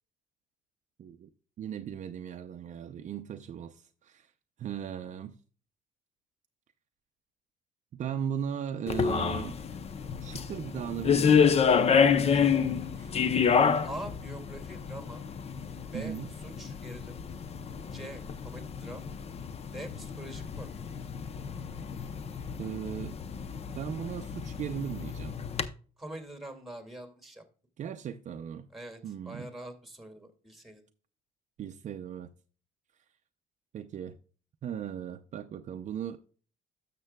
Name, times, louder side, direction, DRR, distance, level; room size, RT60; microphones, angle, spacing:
voice 1, 1.0-1.3 1.6-4.3 4.6-5.4 7.9-9.6 10.2-11.6 12.0-13.3 15.9-16.3 22.6-23.2 23.7-25.3 27.8-28.7 29.0-29.5 31.6-32.3 33.7-34.2 34.6-36.2, right 8 dB, 45° right, 0.5 m, -37 dB
sound 1, 8.9-25.7, left 6 dB, 40° left, 0.6 m, -29 dB
voice 2, 13.8-15.2 15.9-17.2 17.9-19.1 19.7-20.7 26.0-27.4 28.7-29.0 29.3-30.8, right 1 dB, ahead, 2.1 m, -44 dB
12.5 x 6.7 x 2.2 m
cardioid pair, 110°, 17 cm